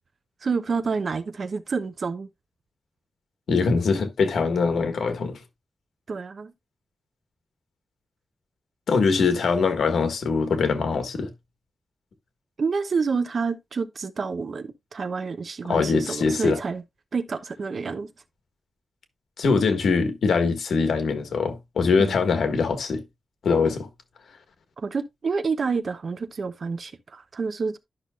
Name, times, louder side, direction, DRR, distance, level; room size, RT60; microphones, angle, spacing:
voice 1, 0.4-2.3 6.1-6.5 12.6-16.8 17.1-18.1 22.0-22.2 24.8-27.8, right 5 dB, 55° right, 0.9 m, -28 dB
voice 2, 3.5-5.4 8.9-11.3 15.6-16.6 19.4-23.0 23.4-23.9, left 4 dB, 90° left, 1.5 m, -22 dB
12.0 x 6.0 x 2.4 m
wide cardioid pair, 125°, 0 cm